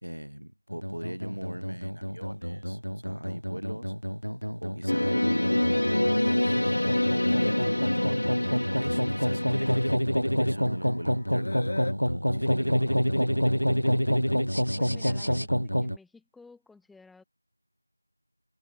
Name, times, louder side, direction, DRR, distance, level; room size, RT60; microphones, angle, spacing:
voice 1, 0.0-3.9 4.6-6.6 7.2-9.9 10.2-11.6 12.3-13.3, equal, 70° right, 2.9 m, -40 dB
sound 1, 0.7-16.0, equal, 90° left, 1.6 m, -28 dB
sound 2, 4.9-10.0, left 1 dB, 55° left, 0.4 m, -26 dB
sound 3, 5.0-11.9, left 2 dB, 30° left, 3.3 m, -40 dB
voice 2, 14.8-17.2, left 4 dB, ahead, 2.0 m, -53 dB
figure-of-eight pair, 175°, 0 cm